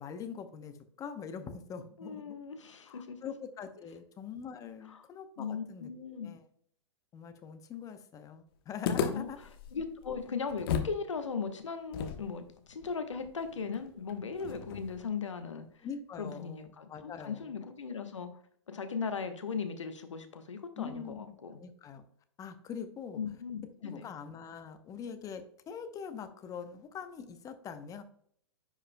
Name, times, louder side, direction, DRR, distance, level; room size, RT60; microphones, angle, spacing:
voice 1, 0.0-2.3 2.9-6.4 7.1-9.4 15.8-17.5 20.8-22.0 22.4-23.2 23.8-28.0, left 7 dB, 20° left, 9 dB, 0.8 m, -43 dB
voice 2, 2.0-3.2 4.9-5.1 5.4-6.3 8.9-15.7 16.2-18.4 18.7-21.6 23.2-24.1, left 5 dB, 85° left, 8 dB, 1.1 m, -38 dB
sound 1, 8.8-11.0 11.3-11.4 11.9-15.1, left 7 dB, 50° left, 1.0 m, -36 dB
10.0 x 4.9 x 2.2 m, 0.62 s
hypercardioid pair, 120°, 15 cm